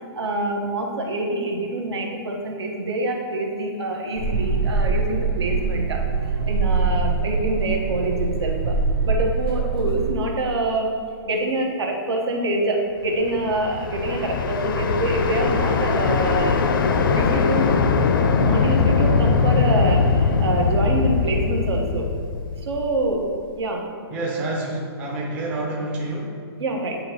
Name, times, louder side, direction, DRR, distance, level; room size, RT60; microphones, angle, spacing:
voice 1, 0.1-6.0 6.3-8.8 9.0-10.9 11.2-16.6 17.1-17.7 18.4-22.1 22.6-23.3 23.5-23.8 26.6-27.0, right 2 dB, 80° right, 1 dB, 1.2 m, -25 dB
sound 1, 4.2-10.2, right 4 dB, 60° right, 0.9 m, -23 dB
sound 2, 13.2-23.2, left 4 dB, 55° left, 0.5 m, -21 dB
voice 2, 24.1-26.4, right 2 dB, 10° right, -4 dB, 0.4 m, -28 dB
8.7 x 2.9 x 4.4 m, 2.1 s
hypercardioid pair, 175°, 14 cm